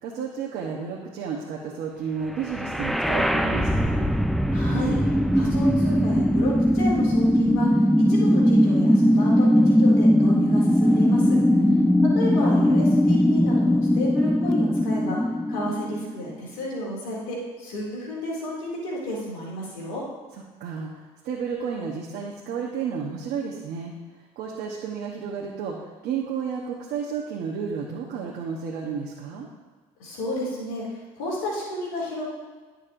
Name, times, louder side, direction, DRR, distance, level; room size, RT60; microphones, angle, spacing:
voice 1, 0.0-4.1 11.5-12.0 20.6-23.9 24.4-29.5, right 6 dB, 70° right, -2 dB, 1.1 m, -32 dB
sound 1, 2.4-16.4, equal, ahead, 0.5 m, -20 dB
voice 2, 4.5-5.0 5.3-7.7 8.0-11.4 12.1-15.2 15.5-20.0 30.0-30.9 31.2-32.2, left 1 dB, 85° left, -4 dB, 2.5 m, -32 dB
11.0 x 6.4 x 2.6 m, 1.4 s
supercardioid pair, 75°, 18 cm